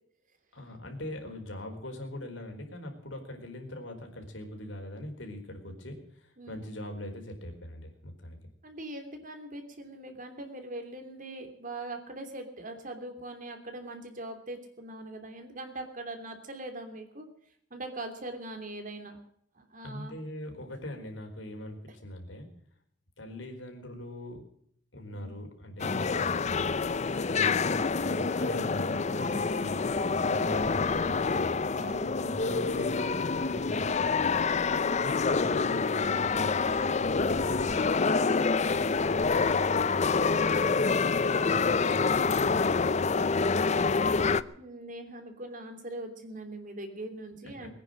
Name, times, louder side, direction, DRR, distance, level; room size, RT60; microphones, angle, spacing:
voice 1, 0.5-8.4 19.8-22.5 23.2-24.4 24.9-31.6 32.1-34.4 35.3-38.2 38.7-41.0 41.3-44.3 47.6-47.7, left 1 dB, 85° left, 3 dB, 4.5 m, -41 dB
voice 2, 8.6-17.2 17.7-19.2 19.5-20.2 25.1-25.4 31.8-32.2 34.6-34.9 44.4-47.7, right 2 dB, 45° right, 6 dB, 3.0 m, -41 dB
sound 1, 25.8-44.4, left 4 dB, 35° left, 0.6 m, -27 dB
22.5 x 9.8 x 6.5 m, 0.69 s
head